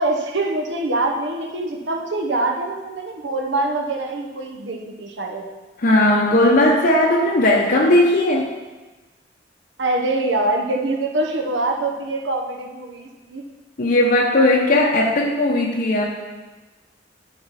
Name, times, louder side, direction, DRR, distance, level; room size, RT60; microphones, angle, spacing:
voice 1, 0.0-5.4 9.8-13.4, right 2 dB, 80° right, 2 dB, 0.9 m, -24 dB
voice 2, 5.8-8.5 13.8-16.1, left 1 dB, 55° left, -2 dB, 0.7 m, -17 dB
12.0 x 4.4 x 4.1 m, 1.2 s
head